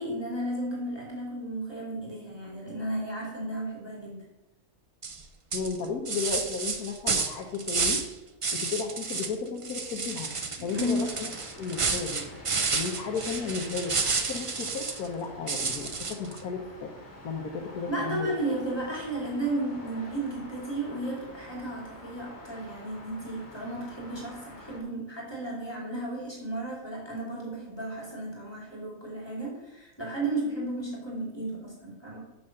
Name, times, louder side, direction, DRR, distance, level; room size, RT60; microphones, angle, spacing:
voice 1, 0.0-4.2 10.6-11.1 17.9-32.2, right 1 dB, 15° left, -4 dB, 2.6 m, -34 dB
sound 1, 5.0-5.2 5.5-8.1 8.4-9.3 9.6-15.1 15.5-16.4, right 4 dB, 45° right, 0.4 m, -30 dB
voice 2, 5.5-8.0 8.5-10.3 10.6-11.3 11.6-12.2 12.7-16.9 17.2-18.3, left 5 dB, 80° left, 0 dB, 1.4 m, -34 dB
sound 2, 10.7-24.8, left 1 dB, 45° left, 2.2 m, -47 dB
7.1 x 6.0 x 6.5 m, 0.97 s
omnidirectional pair, 1.6 m